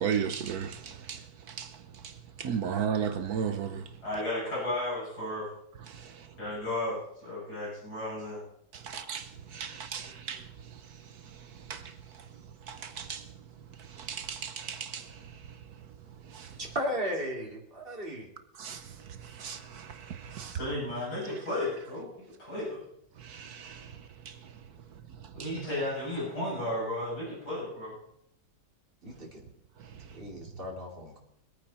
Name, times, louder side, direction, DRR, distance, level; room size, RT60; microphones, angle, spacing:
voice 1, 0.0-4.0 5.9-6.4 8.7-16.6 18.5-20.6 23.2-25.7 29.8-30.2, right 7 dB, 65° right, 1.3 m, -37 dB
voice 2, 4.0-5.5 6.4-8.4 20.5-22.1 22.4-22.8 25.3-28.0, left 1 dB, 65° left, 8.0 m, -34 dB
voice 3, 16.7-18.3 29.0-29.5 30.1-31.2, equal, 30° right, 3.3 m, -35 dB
23.5 x 9.3 x 4.3 m
omnidirectional pair, 1.8 m